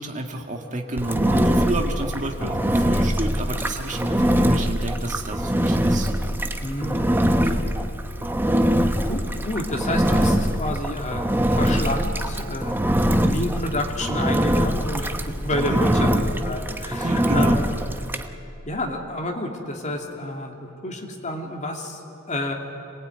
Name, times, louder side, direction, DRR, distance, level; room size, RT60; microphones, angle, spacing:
voice 1, 0.0-6.1 7.4-7.6 15.7-16.2 16.9-17.6, right 2 dB, 35° right, 2 dB, 1.7 m, -30 dB
Engine, 1.0-18.3, equal, 10° right, 0.9 m, -23 dB
voice 2, 6.6-7.7 9.0-12.8 13.2-15.1 15.4-16.1 16.4-17.7 18.7-22.0 22.3-22.5, left 1 dB, 35° left, 2 dB, 2.7 m, -29 dB
26.0 x 19.0 x 9.3 m, 2.9 s
head